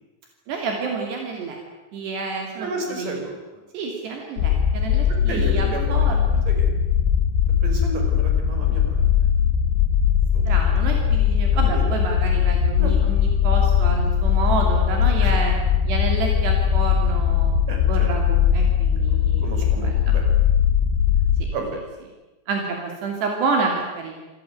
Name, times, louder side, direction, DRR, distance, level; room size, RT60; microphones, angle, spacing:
voice 1, 0.5-1.6 1.9-3.2 3.7-6.3 10.5-15.5 15.8-17.5 17.9-19.5 19.8-20.1 22.5-24.2, right 4 dB, 75° right, 2 dB, 5.0 m, -29 dB
voice 2, 2.6-3.3 5.3-6.1 6.5-6.6 7.6-8.9 10.3-10.4 11.7-11.8 12.8-12.9 15.2-15.4 17.7-18.1 19.4-20.2 21.5-21.8, right 2 dB, 50° right, 3 dB, 6.7 m, -31 dB
sound 1, 4.4-21.4, left 8 dB, 90° left, 3.4 m, -20 dB
27.0 x 19.0 x 9.5 m, 1.1 s
omnidirectional pair, 4.8 m